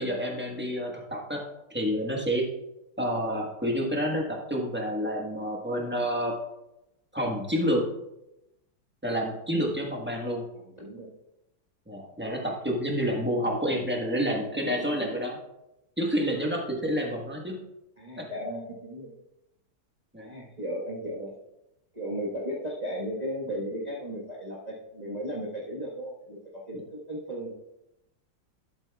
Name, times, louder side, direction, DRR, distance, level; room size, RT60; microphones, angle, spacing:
voice 1, 0.0-1.4 1.7-2.4 3.0-6.3 7.1-7.8 9.0-10.4 11.9-15.4 16.0-17.6 18.2-18.3 20.1-20.3, equal, 10° right, 0 dB, 0.9 m, -29 dB
voice 2, 10.5-11.1 13.0-13.1 14.4-15.0 18.0-19.1 20.2-21.3 21.9-27.5, equal, 25° right, -5 dB, 1.2 m, -36 dB
12.0 x 7.6 x 2.3 m, 0.89 s
omnidirectional pair, 2.1 m